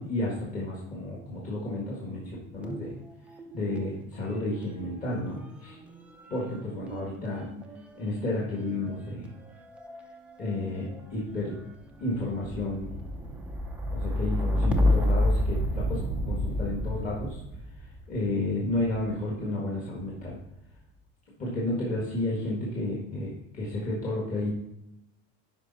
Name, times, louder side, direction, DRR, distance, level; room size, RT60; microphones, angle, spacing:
voice 1, 0.0-2.9 3.5-5.8 6.3-7.5 7.9-9.3 10.4-11.6 12.0-12.9 13.9-16.0 16.3-17.4 18.1-20.4 21.4-24.5, left 2 dB, 25° left, -4 dB, 1.5 m, -32 dB
sound 1, 2.6-3.9 4.2-19.2 20.0-20.6, left 1 dB, 5° right, 0.5 m, -31 dB
9.6 x 5.3 x 4.0 m, 0.85 s
cardioid pair, 175°, 32 cm